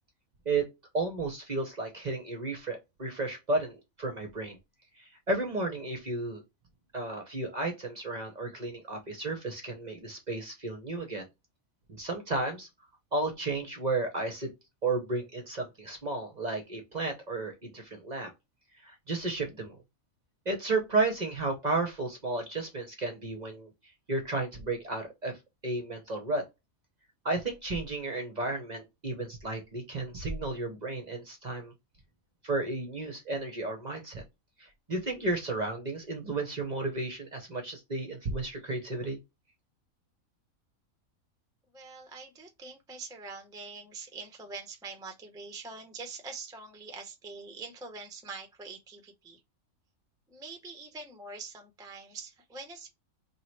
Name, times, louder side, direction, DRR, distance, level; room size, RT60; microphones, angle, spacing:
voice 1, 0.9-4.6 5.0-6.4 6.9-11.3 11.9-12.7 13.1-14.5 14.8-18.3 18.8-19.8 20.5-23.7 24.1-25.4 25.6-26.4 27.2-31.7 32.4-34.2 34.6-39.2, right 3 dB, 40° right, 0.7 m, -33 dB
voice 2, 41.7-49.4 50.3-52.9, right 4 dB, 5° right, 0.4 m, -44 dB
3.0 x 2.8 x 4.3 m
omnidirectional pair, 1.5 m